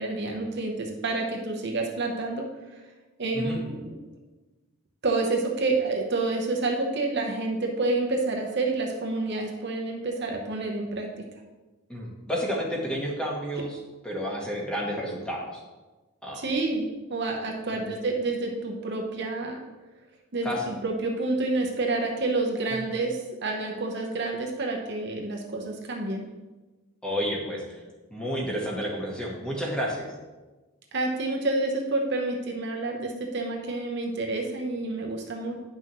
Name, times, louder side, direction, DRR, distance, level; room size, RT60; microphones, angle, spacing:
voice 1, 0.0-2.4 3.2-4.0 5.0-11.1 16.3-16.8 17.1-19.6 20.3-26.2 30.9-35.6, right 2 dB, 50° right, 1 dB, 0.9 m, -28 dB
voice 2, 11.9-13.8 14.0-15.5 16.2-16.4 17.7-18.0 20.4-20.6 27.0-27.6 28.1-30.1, equal, 5° left, -3 dB, 1.3 m, -30 dB
9.9 x 5.9 x 3.0 m, 1.2 s
head